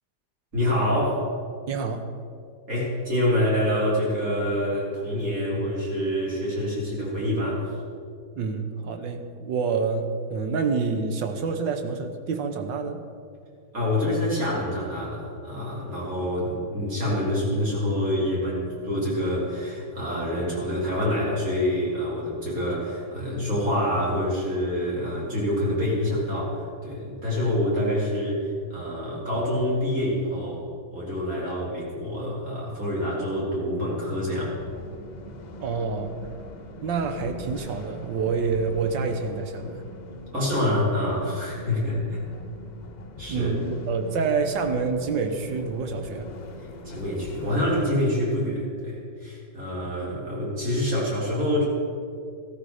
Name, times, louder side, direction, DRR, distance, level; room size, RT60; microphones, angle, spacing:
voice 1, 0.5-1.2 2.7-7.7 13.7-30.6 30.9-34.6 40.1-42.2 43.2-43.5 46.6-51.7, left 1 dB, 50° right, -6 dB, 4.5 m, -26 dB
voice 2, 1.7-2.0 8.4-10.0 10.3-13.0 35.6-36.2 36.8-39.8 41.7-41.8 43.3-46.3, right 5 dB, 80° right, 6 dB, 1.8 m, -27 dB
sound 1, 34.6-47.9, left 1 dB, 55° left, 0.4 m, -42 dB
14.5 x 13.5 x 5.0 m, 2.3 s
omnidirectional pair, 2.0 m